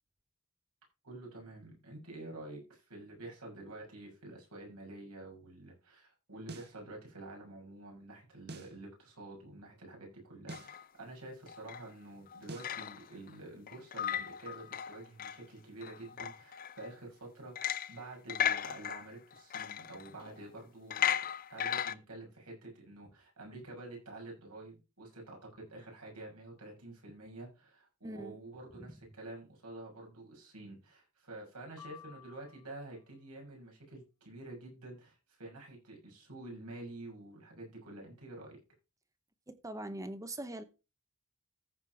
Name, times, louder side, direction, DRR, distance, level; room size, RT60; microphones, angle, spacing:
voice 1, 1.0-21.2 21.5-38.6, right 2 dB, 90° right, 6.5 m, -48 dB
sound 1, 6.5-6.8 8.5-8.8 10.5-10.8 12.5-12.8, right 2 dB, 45° right, 1.4 m, -46 dB
sound 2, 10.5-10.8 11.5-11.8 12.3-13.3 13.7-15.4 15.8-16.9 17.6-18.0 18.3-20.4 20.9-21.9, left 9 dB, 40° left, 0.4 m, -36 dB
voice 2, 28.0-28.4 39.5-40.6, right 1 dB, 15° right, 0.8 m, -42 dB
sound 3, 31.8-33.0, left 10 dB, 90° left, 3.2 m, -54 dB
14.5 x 5.3 x 4.6 m
head